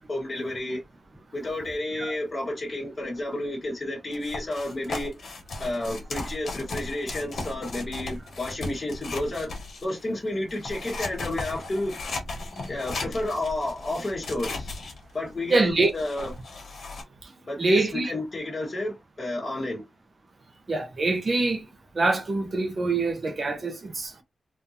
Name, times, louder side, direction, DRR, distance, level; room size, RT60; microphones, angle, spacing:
voice 1, 0.1-0.8 1.3-5.1 5.6-9.5 9.8-11.9 12.7-14.8 15.1-16.3 17.5-19.8, left 1 dB, 25° left, 1.3 m, -31 dB
sound 1, 4.1-10.0 10.5-17.0, left 3 dB, 80° left, 1.2 m, -36 dB
voice 2, 15.5-15.9 17.2-17.3 17.6-18.1 20.7-21.6 21.9-24.2, right 3 dB, 40° right, 0.7 m, -24 dB
3.7 x 2.6 x 2.7 m
wide cardioid pair, 175°, 0 cm